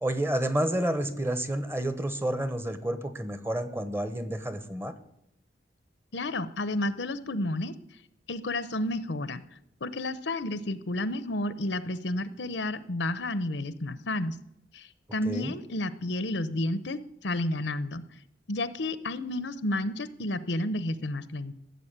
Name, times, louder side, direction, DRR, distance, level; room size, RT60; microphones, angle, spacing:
voice 1, 0.0-4.9 15.2-15.5, right 1 dB, 15° right, 11 dB, 1.0 m, -30 dB
voice 2, 6.1-7.7 8.3-9.4 9.8-14.4 14.7-18.0 18.5-21.5, left 1 dB, 75° left, 15 dB, 0.8 m, -31 dB
14.5 x 7.3 x 8.8 m, 0.80 s
head